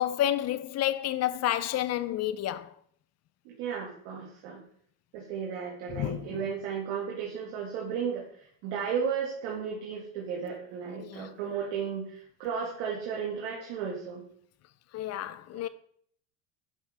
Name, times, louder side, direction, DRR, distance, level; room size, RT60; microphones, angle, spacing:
voice 1, 0.0-2.7 5.9-6.4 11.0-11.3 14.9-15.7, left 12 dB, 45° left, 0.6 m, -30 dB
voice 2, 3.5-4.6 5.1-14.2, right 7 dB, 75° right, 2.1 m, -34 dB
10.5 x 5.9 x 3.5 m
supercardioid pair, 100°, 38 cm